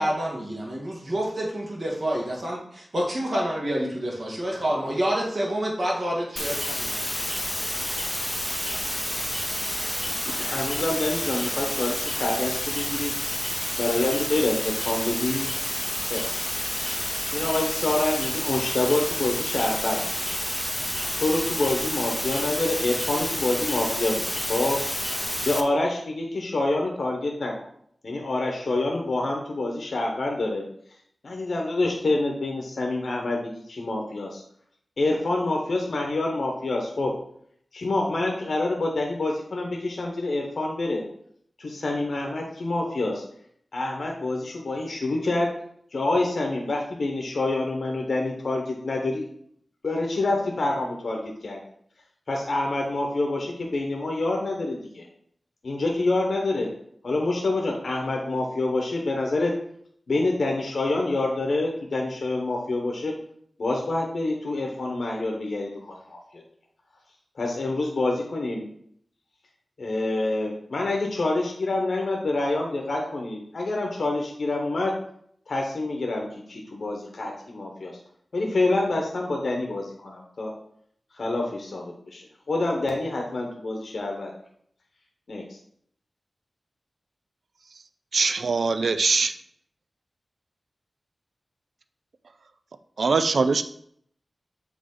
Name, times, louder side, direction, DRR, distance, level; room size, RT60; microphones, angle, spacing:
voice 1, 0.0-7.1, equal, 55° right, -3 dB, 2.1 m, -28 dB
sound 1, 6.4-25.6, equal, 10° left, 0.6 m, -29 dB
voice 2, 10.2-13.1 13.8-15.5 16.0-16.2 16.7-20.0 21.1-24.8 25.1-27.5 28.0-30.6 31.2-34.4 35.0-37.1 37.7-41.0 41.6-43.2 43.7-45.5 45.9-49.2 49.8-51.6 52.3-55.1 55.6-56.7 57.0-59.5 60.1-63.1 63.6-66.4 67.4-68.6 69.8-74.9 75.5-77.9 78.3-80.5 81.1-82.2 82.5-84.3 85.3-85.4, left 2 dB, 75° left, 0 dB, 1.0 m, -27 dB
voice 3, 88.1-89.3 93.0-93.6, right 4 dB, 80° right, 10 dB, 0.4 m, -22 dB
7.6 x 3.3 x 3.8 m, 0.66 s
wide cardioid pair, 65°, 0 cm